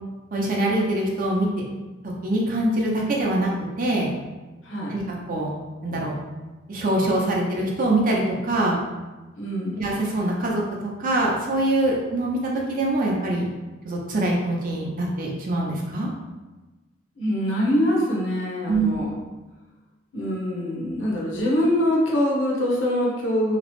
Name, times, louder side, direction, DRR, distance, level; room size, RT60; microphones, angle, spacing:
voice 1, 0.3-1.5 2.2-3.5 3.8-4.1 4.9-5.0 5.3-5.5 5.8-6.2 6.7-8.8 9.8-13.5 13.8-16.1 18.7-19.0, right 1 dB, 45° right, -2 dB, 0.5 m, -24 dB
voice 2, 4.6-5.0 9.4-9.9 17.2-19.1 20.1-23.6, equal, 70° left, -3 dB, 0.7 m, -24 dB
2.9 x 2.0 x 2.9 m, 1.2 s
head